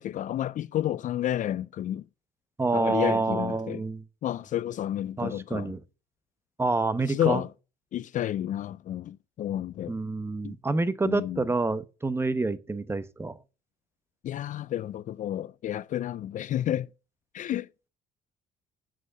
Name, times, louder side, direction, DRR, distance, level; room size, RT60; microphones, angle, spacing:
voice 1, 0.0-2.1 2.7-3.8 4.2-5.8 7.1-7.5 7.9-10.0 10.4-10.6 11.0-11.5 14.2-16.9 17.3-17.7, left 12 dB, 50° left, 0.4 m, -30 dB
voice 2, 2.6-4.0 5.2-5.8 6.6-7.4 9.9-13.3, right 3 dB, 15° right, 0.8 m, -28 dB
7.7 x 6.3 x 7.8 m
cardioid pair, 110°, 17 cm